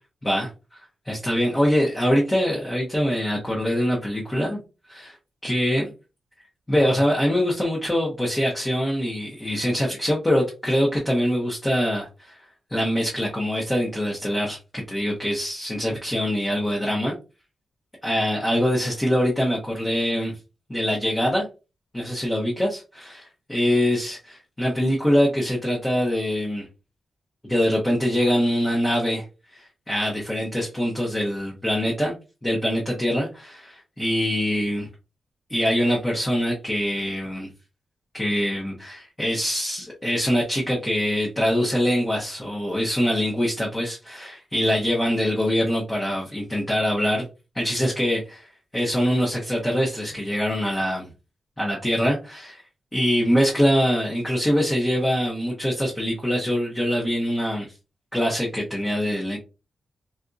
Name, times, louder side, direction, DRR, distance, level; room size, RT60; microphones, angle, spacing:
voice 1, 0.2-0.8 1.0-4.6 4.9-5.2 5.4-5.9 6.7-12.4 12.7-17.1 18.0-20.3 20.7-21.5 21.9-26.7 27.5-29.2 29.5-32.1 32.4-34.9 35.5-37.5 38.1-47.3 47.5-51.1 51.6-52.6 52.9-57.7 58.1-59.4, equal, 15° left, 0.8 m, -24 dB
3.5 x 2.6 x 2.5 m
wide cardioid pair, 140°, 0 cm